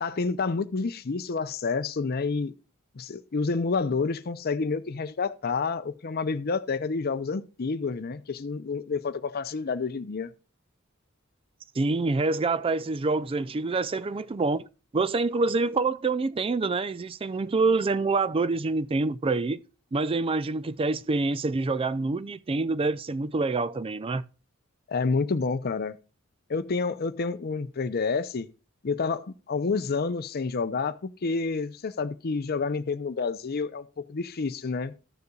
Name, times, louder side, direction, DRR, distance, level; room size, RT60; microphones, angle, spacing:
voice 1, 0.0-2.5 3.0-10.3 24.9-26.0 26.5-28.5 28.8-34.9, left 4 dB, 50° left, 0.6 m, -29 dB
voice 2, 11.8-14.7 14.9-19.6 19.9-24.2, right 3 dB, 25° right, 0.4 m, -26 dB
14.0 x 6.7 x 2.3 m
head